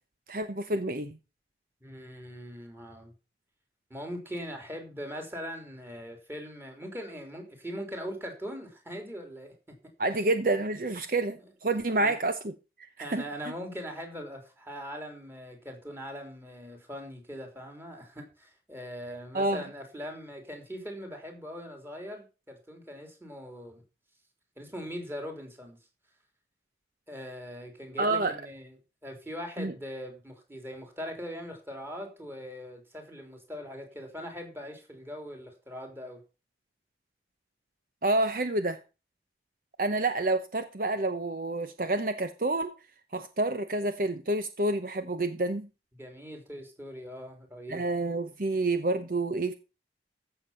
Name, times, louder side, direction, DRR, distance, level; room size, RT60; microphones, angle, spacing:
voice 1, 0.3-1.2 10.0-12.4 13.0-13.2 19.3-19.6 28.0-28.3 29.6-29.7 38.0-38.8 39.8-42.7 43.1-45.7 47.7-49.5, right 2 dB, 50° right, 0.8 m, -28 dB
voice 2, 1.8-3.1 3.9-9.5 11.9-12.2 13.0-23.8 24.6-25.8 27.1-28.7 29.0-36.2 46.0-47.8, equal, 15° right, 3.4 m, -41 dB
15.0 x 7.1 x 5.6 m
head